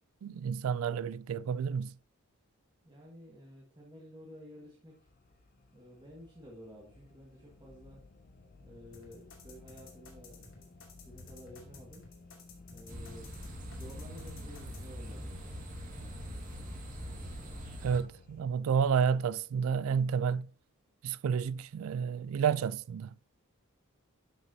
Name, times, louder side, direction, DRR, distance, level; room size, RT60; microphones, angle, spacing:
voice 1, 0.2-1.9 17.8-20.5 21.0-23.1, right 7 dB, 65° right, 0.3 m, -30 dB
voice 2, 2.8-5.1 5.7-8.0 8.6-12.1 12.7-15.4, equal, 20° right, 1.5 m, -52 dB
sound 1, 4.9-18.4, left 2 dB, 40° left, 0.5 m, -55 dB
sound 2, 8.9-14.8, left 4 dB, 60° left, 2.6 m, -53 dB
sound 3, 12.9-18.0, equal, 35° right, 1.7 m, -43 dB
11.5 x 6.1 x 2.7 m
head